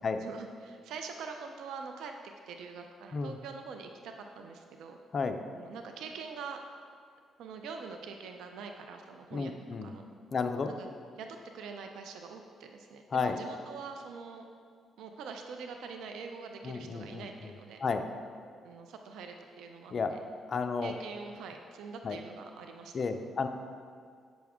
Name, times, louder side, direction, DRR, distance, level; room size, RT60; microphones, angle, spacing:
voice 1, 0.2-2.1 2.5-5.0 5.5-6.6 7.4-9.5 9.8-10.0 10.7-10.9 11.2-14.5 15.0-17.8 18.6-20.2 20.8-23.0, right 5 dB, 80° right, 4 dB, 0.5 m, -44 dB
voice 2, 9.3-9.9 10.3-10.7 13.1-13.4 16.6-17.3 17.8-18.0 19.9-20.1 20.5-20.9 22.0-22.2 22.9-23.5, left 5 dB, 45° left, 7 dB, 0.5 m, -32 dB
8.4 x 6.0 x 3.6 m, 2.2 s
cardioid pair, 90°, 0 cm